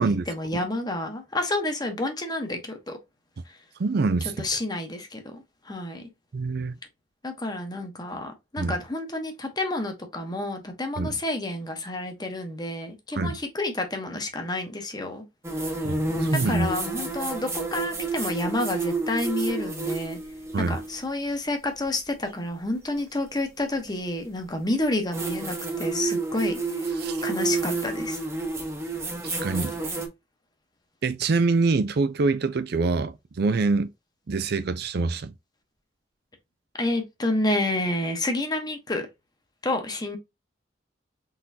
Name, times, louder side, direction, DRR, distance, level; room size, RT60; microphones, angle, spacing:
voice 1, 0.0-3.0 3.5-3.6 4.2-6.1 7.2-15.2 15.6-15.7 16.3-20.2 20.6-26.9 27.2-28.2 36.8-39.1 39.6-40.2, left 2 dB, 20° left, 1.0 m, -29 dB
voice 2, 3.8-4.3 6.3-6.7 8.6-8.7 11.0-11.2 13.2-13.4 15.8-16.7 20.5-20.8 27.0-27.2 29.2-29.7 31.0-33.9 34.3-35.3, right 3 dB, 60° right, 0.4 m, -25 dB
sound 1, 15.4-20.9 23.0-23.1 25.1-30.1, right 3 dB, 15° right, 0.9 m, -29 dB
4.0 x 3.7 x 2.7 m
head